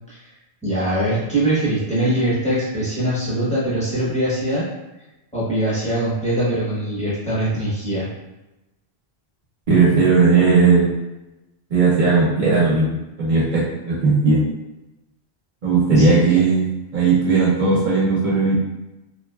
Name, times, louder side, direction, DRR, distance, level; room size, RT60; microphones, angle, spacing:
voice 1, 0.6-4.7 5.3-8.0 16.0-16.4, right 1 dB, 5° left, -9 dB, 0.7 m, -22 dB
voice 2, 9.7-10.9 11.7-14.4 15.6-16.7 16.9-18.6, right 4 dB, 55° right, -6 dB, 0.6 m, -17 dB
2.5 x 2.3 x 2.2 m, 0.99 s
omnidirectional pair, 1.1 m